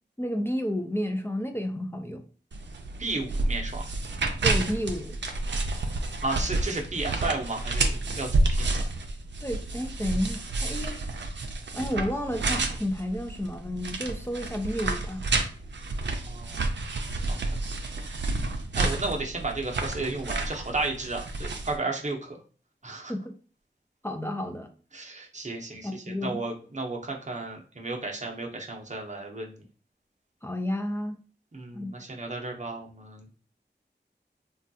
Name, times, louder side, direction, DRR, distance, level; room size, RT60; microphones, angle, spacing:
voice 1, 0.2-2.2 4.4-5.2 9.4-11.0 11.7-15.2 23.1-23.3 24.0-24.7 25.8-26.4 30.4-31.2 31.7-31.9, left 1 dB, 15° left, 4 dB, 0.4 m, -31 dB
sound 1, 2.5-21.8, right 2 dB, 80° right, 0.4 m, -30 dB
voice 2, 3.0-3.9 6.2-8.8 16.3-16.6 17.3-17.6 18.8-22.4 22.8-23.1 24.9-29.6 31.5-33.3, right 2 dB, 40° right, 1 dB, 0.7 m, -33 dB
3.2 x 2.3 x 2.7 m, 0.39 s
wide cardioid pair, 45°, 18 cm